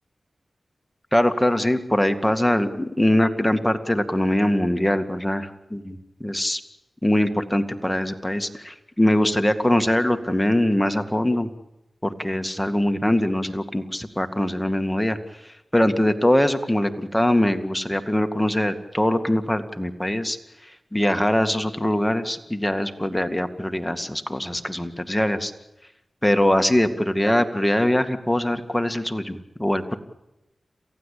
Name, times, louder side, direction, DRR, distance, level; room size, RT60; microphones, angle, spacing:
voice 1, 1.1-6.6 7.0-11.5 12.0-15.2 15.4-20.4 20.9-25.5 26.2-30.0, left 1 dB, 10° left, 8 dB, 2.1 m, -22 dB
28.5 x 15.5 x 8.6 m, 0.93 s
cardioid pair, 45°, 0 cm